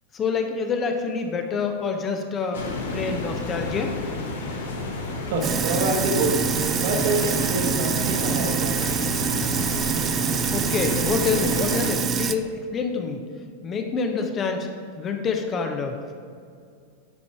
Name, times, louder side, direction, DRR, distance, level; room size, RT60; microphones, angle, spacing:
voice 1, 0.1-2.6 2.9-4.0 10.5-13.2 13.6-14.7 15.0-16.1, left 5 dB, 25° left, 4 dB, 0.8 m, -27 dB
sound 1, 2.5-11.9, left 3 dB, 60° left, 1.2 m, -31 dB
voice 2, 5.3-6.3 6.8-8.8, right 2 dB, 50° right, 2 dB, 1.4 m, -26 dB
Sink (filling or washing), 5.4-12.3, right 7 dB, 25° right, 0.4 m, -25 dB
9.6 x 5.4 x 4.7 m, 2.3 s
figure-of-eight pair, 90°, 0 cm